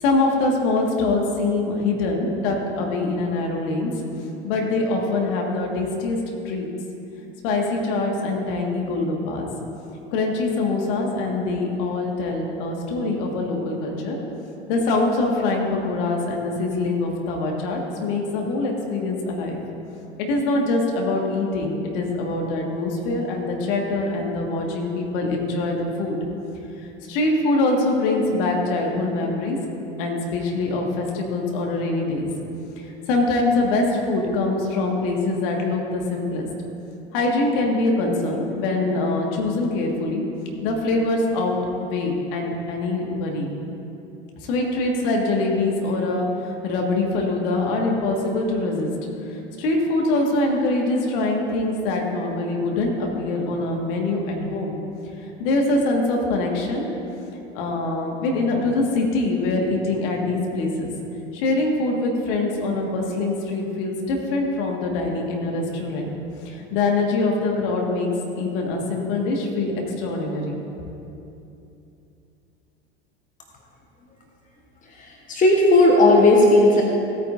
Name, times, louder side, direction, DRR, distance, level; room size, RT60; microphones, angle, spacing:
voice 1, 0.0-3.9 4.4-6.2 6.5-6.7 7.4-9.5 10.1-14.2 14.7-19.6 20.2-26.1 27.1-29.6 30.0-32.3 32.8-36.5 37.1-40.2 40.6-43.5 44.4-48.9 49.3-54.8 55.4-56.9 57.5-60.9 61.3-66.1 66.5-68.1 68.4-70.6, left 2 dB, 55° left, 0 dB, 1.9 m, -24 dB
voice 2, 75.3-76.8, left 2 dB, 25° left, 0 dB, 1.3 m, -14 dB
16.5 x 9.0 x 2.7 m, 2.8 s
figure-of-eight pair, 75°, 32 cm